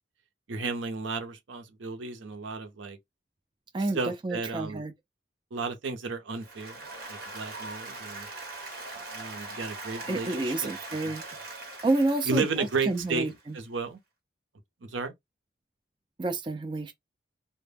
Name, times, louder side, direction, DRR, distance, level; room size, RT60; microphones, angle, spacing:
voice 1, 0.5-3.0 3.9-4.8 5.5-8.3 9.1-10.7 12.2-14.0 14.8-15.1, right 4 dB, 90° right, 0.6 m, -33 dB
voice 2, 3.7-4.9 10.1-11.2 11.6-13.6 16.2-16.9, right 2 dB, 25° right, 0.3 m, -29 dB
Applause, 6.3-13.5, right 2 dB, 50° right, 1.1 m, -41 dB
2.1 x 2.1 x 3.2 m
head